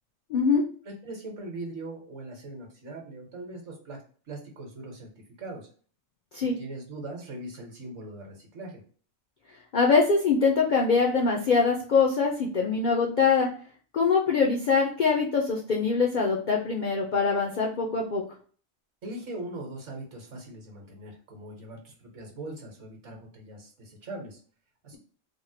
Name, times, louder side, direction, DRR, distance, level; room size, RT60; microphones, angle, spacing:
voice 1, 0.3-0.6 6.3-6.5 9.7-13.5 13.9-18.2, left 5 dB, 80° left, -1 dB, 0.4 m, -23 dB
voice 2, 0.8-4.0 4.3-5.1 5.4-5.7 6.4-8.8 19.0-24.4 24.8-25.0, right 2 dB, 65° right, 0 dB, 1.2 m, -40 dB
3.5 x 2.1 x 2.6 m, 0.44 s
omnidirectional pair, 1.4 m